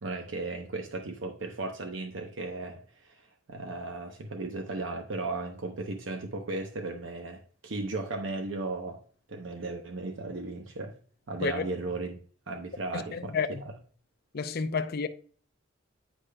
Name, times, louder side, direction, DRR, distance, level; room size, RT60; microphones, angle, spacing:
voice 1, 0.0-9.0 9.3-11.0 11.3-12.2 12.5-13.7, right 2 dB, 80° right, 0.8 m, -36 dB
voice 2, 13.1-13.5 14.3-15.1, left 5 dB, 55° left, 0.5 m, -30 dB
10.0 x 4.9 x 2.2 m
head